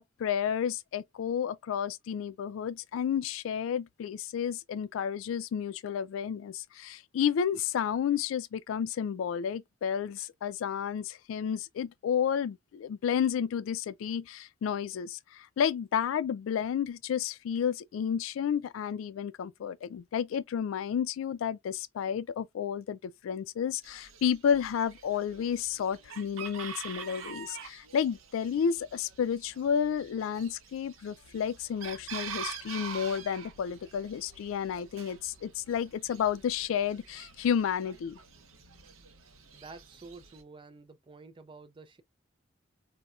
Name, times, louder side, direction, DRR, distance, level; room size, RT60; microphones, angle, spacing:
voice 1, 0.0-38.2, left 8 dB, 80° left, 0.3 m, -31 dB
Chicken rooster, 23.8-40.4, right 6 dB, 90° right, 0.6 m, -46 dB
voice 2, 39.5-42.0, right 3 dB, 25° right, 0.4 m, -50 dB
4.1 x 2.2 x 2.3 m
head